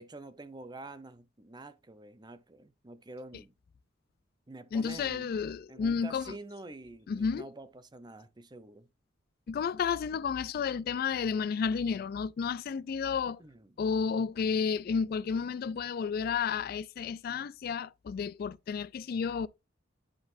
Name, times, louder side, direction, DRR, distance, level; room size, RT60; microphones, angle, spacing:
voice 1, 0.0-3.5 4.5-5.3 5.7-8.9 13.4-13.8 17.3-17.5, right 2 dB, 20° right, 0.7 m, -47 dB
voice 2, 4.7-6.3 7.1-7.4 9.5-13.4 13.8-19.5, left 6 dB, 50° left, 0.3 m, -31 dB
10.5 x 3.9 x 2.6 m
head